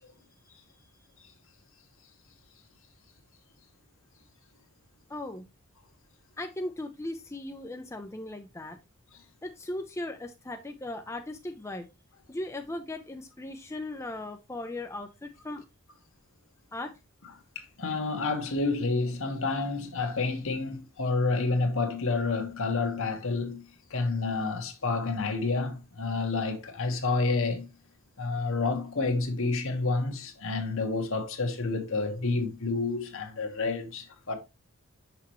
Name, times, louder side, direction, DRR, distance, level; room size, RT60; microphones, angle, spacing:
voice 1, 5.1-5.5 6.4-8.8 9.4-11.9 12.3-15.6 16.7-16.9, left 1 dB, 15° left, 0.5 m, -37 dB
voice 2, 17.5-23.6 23.9-27.7 28.2-34.3, left 3 dB, 60° left, 1.3 m, -29 dB
5.9 x 5.9 x 3.0 m
head